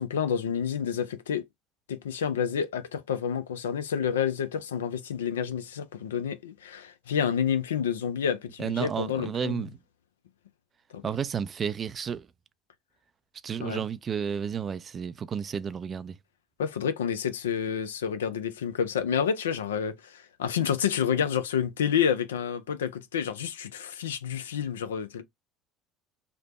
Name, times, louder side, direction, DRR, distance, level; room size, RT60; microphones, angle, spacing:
voice 1, 0.0-1.4 1.9-9.7 10.9-11.0 13.6-13.8 16.6-25.2, left 8 dB, 80° left, 0.3 m, -29 dB
voice 2, 8.6-9.8 11.0-12.3 13.4-16.2, right 7 dB, 35° right, 0.3 m, -32 dB
3.3 x 2.0 x 2.9 m
hypercardioid pair, 65°, 0 cm